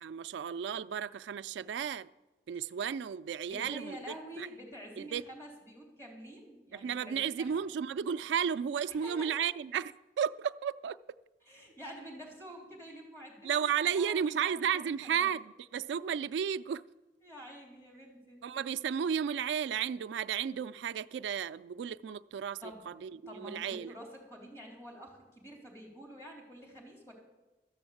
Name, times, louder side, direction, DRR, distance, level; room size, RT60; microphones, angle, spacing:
voice 1, 0.0-2.1 2.5-4.0 4.4-4.5 5.0-5.2 6.7-11.0 13.4-16.8 18.4-23.9, right 8 dB, 85° right, 0.3 m, -33 dB
voice 2, 3.5-7.5 8.9-9.3 11.4-15.3 17.2-18.4 22.6-22.9 23.3-27.1, equal, 15° left, 3.5 m, -48 dB
13.0 x 7.0 x 8.4 m
head